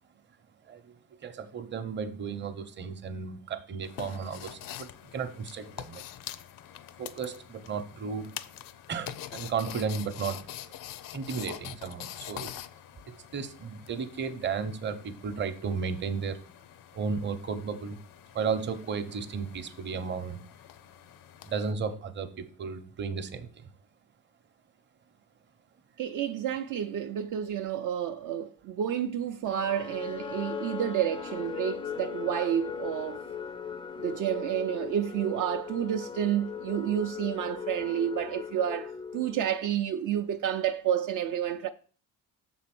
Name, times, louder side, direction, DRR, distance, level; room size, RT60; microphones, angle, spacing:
voice 1, 1.2-6.0 7.0-8.4 8.9-10.4 11.1-12.5 13.1-16.4 16.9-18.0 18.3-20.4 21.4-23.7, right 5 dB, 35° right, 0.8 m, -34 dB
sound 1, 3.8-21.7, left 12 dB, 75° left, 0.6 m, -45 dB
voice 2, 26.0-33.3 34.0-41.7, right 9 dB, 65° right, 0.5 m, -30 dB
sound 2, 29.5-39.7, left 7 dB, 15° left, 0.4 m, -39 dB
6.7 x 4.2 x 6.0 m
cardioid pair, 140°, 34 cm